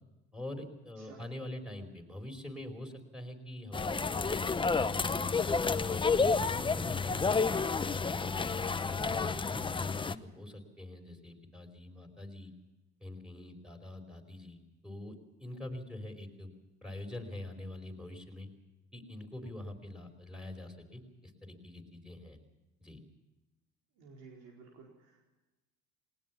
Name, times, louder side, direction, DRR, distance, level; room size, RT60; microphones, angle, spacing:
voice 1, 0.3-4.3 4.8-8.2 8.7-12.5 13.0-16.5 16.8-18.5 18.9-22.4 22.8-23.0, left 1 dB, ahead, 4 dB, 4.7 m, -45 dB
sound 1, 3.7-10.2, left 4 dB, 15° left, 0.8 m, -30 dB
voice 2, 24.0-25.4, right 4 dB, 80° right, -1 dB, 4.7 m, -54 dB
19.5 x 19.5 x 7.2 m, 1.1 s
supercardioid pair, 105°, 32 cm